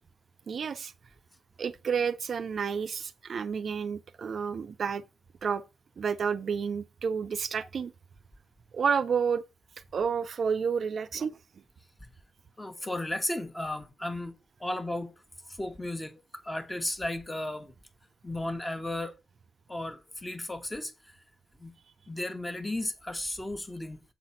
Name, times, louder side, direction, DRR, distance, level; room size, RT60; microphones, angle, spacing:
voice 1, 0.5-0.9 1.6-5.0 5.4-5.6 6.0-7.9 8.7-9.4 9.9-11.4, right 6 dB, 55° right, 0.5 m, -30 dB
voice 2, 12.6-14.3 14.6-15.1 15.5-16.1 16.4-17.7 18.2-19.1 19.7-21.1 21.6-21.7 22.1-24.0, left 1 dB, 15° left, 1.1 m, -34 dB
7.2 x 4.1 x 5.7 m
cardioid pair, 115°, 0 cm